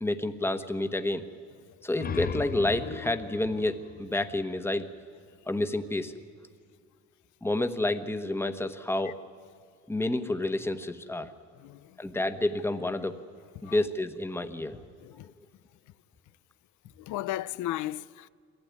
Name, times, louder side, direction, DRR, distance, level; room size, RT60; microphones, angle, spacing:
voice 1, 0.0-1.2 1.8-4.9 5.5-6.1 7.4-9.2 9.9-11.3 12.0-13.2 13.6-14.8, left 2 dB, 10° left, 1.2 m, -29 dB
sound 1, 1.7-5.2, left 8 dB, 30° left, 0.6 m, -38 dB
voice 2, 11.6-12.0 13.6-13.8 15.0-15.3 17.0-18.3, left 15 dB, 80° left, 0.5 m, -35 dB
22.5 x 15.5 x 9.6 m
cardioid pair, 100°, 29 cm